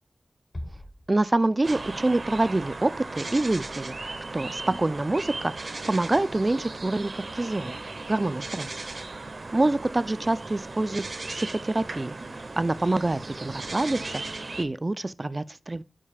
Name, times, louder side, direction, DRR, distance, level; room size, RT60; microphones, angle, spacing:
Bass drum, 0.5-1.9, left 1 dB, 45° left, 1.3 m, -41 dB
voice 1, 1.1-7.8 8.1-8.8 9.5-12.1 12.6-15.8, right 2 dB, 35° right, 0.4 m, -26 dB
sound 1, 1.6-14.6, right 3 dB, 55° right, 0.8 m, -37 dB
5.5 x 4.9 x 5.0 m
wide cardioid pair, 80°, 0 cm